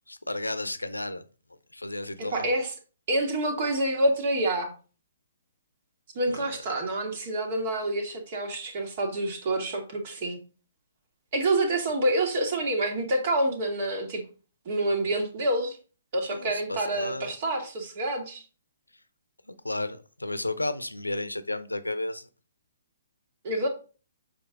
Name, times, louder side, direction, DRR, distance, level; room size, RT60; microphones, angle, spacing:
voice 1, 0.1-1.2 1.7-2.5 6.3-6.5 16.3-17.3 19.5-22.3, left 2 dB, 85° left, 0.7 m, -33 dB
voice 2, 2.2-2.7 3.1-4.7 6.2-10.4 11.3-14.2 14.7-15.8 16.1-18.4 23.4-23.7, right 1 dB, 40° right, 1.9 m, -27 dB
7.0 x 5.1 x 3.8 m
figure-of-eight pair, 125°, 0 cm